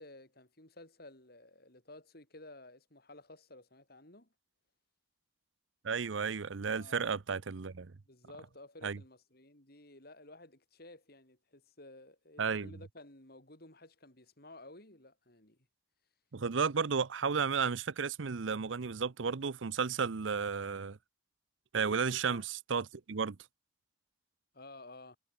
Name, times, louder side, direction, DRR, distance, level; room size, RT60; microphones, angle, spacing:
voice 1, 0.0-4.3 6.6-7.1 8.0-15.6 22.2-22.5 24.5-25.2, left 2 dB, 55° left, 5.5 m, -54 dB
voice 2, 5.8-7.9 8.8-9.0 12.4-12.7 16.3-21.0 21.7-23.4, right 5 dB, 85° right, 0.7 m, -33 dB
head